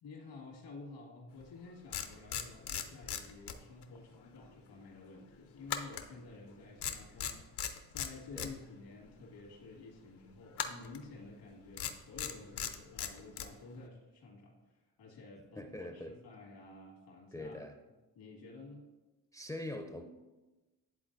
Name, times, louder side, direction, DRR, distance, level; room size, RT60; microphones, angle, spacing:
voice 1, 0.0-17.6 18.1-18.9, left 3 dB, 85° left, -2 dB, 2.0 m, -51 dB
sound 1, 1.4-1.5 1.9-4.0 4.2-4.4 5.7-6.5 6.8-8.5 10.5-11.0 11.7-13.5, left 9 dB, 70° left, 0.7 m, -38 dB
voice 2, 15.6-16.1 17.3-17.8 19.3-20.0, left 1 dB, 10° left, 3 dB, 0.5 m, -42 dB
10.5 x 3.8 x 2.6 m, 1.1 s
cardioid pair, 70°, 42 cm